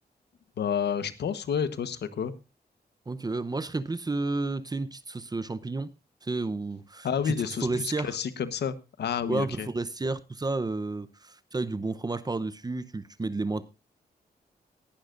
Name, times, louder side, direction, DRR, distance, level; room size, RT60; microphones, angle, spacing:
voice 1, 0.6-2.3 7.0-9.7, left 7 dB, 90° left, 1.2 m, -30 dB
voice 2, 3.1-5.9 6.2-7.4 7.6-8.2 9.3-13.6, right 3 dB, 25° right, 0.7 m, -31 dB
19.0 x 11.5 x 2.5 m
cardioid pair, 95°, 17 cm